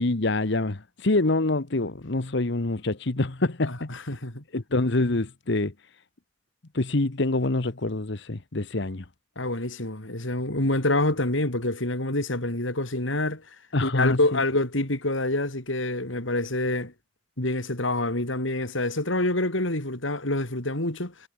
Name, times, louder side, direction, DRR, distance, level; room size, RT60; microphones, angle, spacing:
voice 1, 0.0-4.0 4.5-5.7 6.7-9.0 13.7-14.4, left 2 dB, 65° left, 1.2 m, -26 dB
voice 2, 3.6-4.4 9.4-13.6 13.8-16.9 17.4-21.3, left 2 dB, 80° left, 4.7 m, -27 dB
head